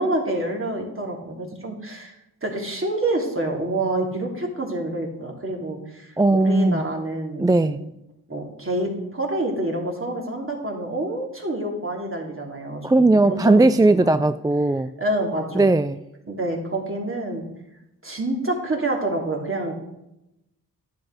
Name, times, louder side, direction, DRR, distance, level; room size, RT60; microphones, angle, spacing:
voice 1, 0.0-7.7 8.3-12.8 13.3-14.2 15.0-15.6 16.3-17.5 18.0-19.7, right 1 dB, 35° right, 0 dB, 2.9 m, -27 dB
voice 2, 6.2-6.8 7.4-7.8 12.8-14.9 15.5-16.0, right 2 dB, 10° right, 12 dB, 0.3 m, -18 dB
10.5 x 8.0 x 5.1 m, 0.88 s
cardioid pair, 50°, 38 cm